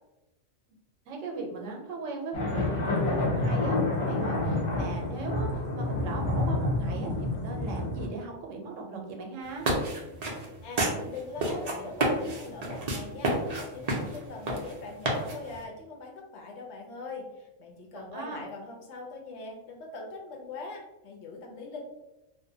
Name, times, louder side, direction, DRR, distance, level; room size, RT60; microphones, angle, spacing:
voice 1, 1.1-3.7 4.0-9.6 18.1-18.4, right 3 dB, 85° right, 2 dB, 1.0 m, -38 dB
sound 1, 2.3-8.1, left 2 dB, 40° left, 0.5 m, -28 dB
sound 2, 9.4-15.6, right 1 dB, 55° right, 0.4 m, -30 dB
voice 2, 10.6-21.8, left 3 dB, 70° left, 0 dB, 0.8 m, -42 dB
2.5 x 2.1 x 2.6 m, 0.95 s
omnidirectional pair, 1.3 m